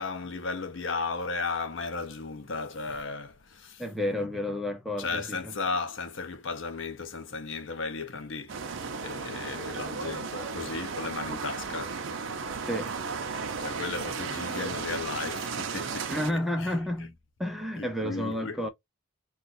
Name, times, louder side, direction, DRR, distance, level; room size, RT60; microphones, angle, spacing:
voice 1, 0.0-3.8 4.2-4.6 5.0-8.6 9.0-12.0 12.3-12.7 13.6-16.8 17.8-18.6, left 4 dB, 60° left, 0.7 m, -35 dB
voice 2, 3.8-5.5 12.7-12.9 16.1-17.1 17.4-18.7, left 1 dB, ahead, 0.4 m, -31 dB
sound 1, 8.5-16.3, right 5 dB, 60° right, 0.5 m, -35 dB
2.5 x 2.4 x 3.9 m
head